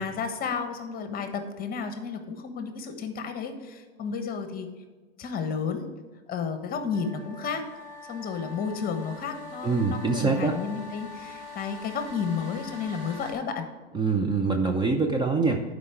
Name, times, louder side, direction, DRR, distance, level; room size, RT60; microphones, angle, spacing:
voice 1, 0.0-4.7 5.2-5.9 6.3-7.6 8.1-13.7, left 6 dB, 25° left, 7 dB, 1.2 m, -32 dB
sound 1, 6.9-13.3, left 3 dB, 60° right, 2.6 m, -43 dB
voice 2, 9.6-10.6 13.9-15.6, right 4 dB, 15° right, 3 dB, 0.6 m, -24 dB
11.0 x 4.9 x 4.5 m, 1.3 s
hypercardioid pair, 105°, 32 cm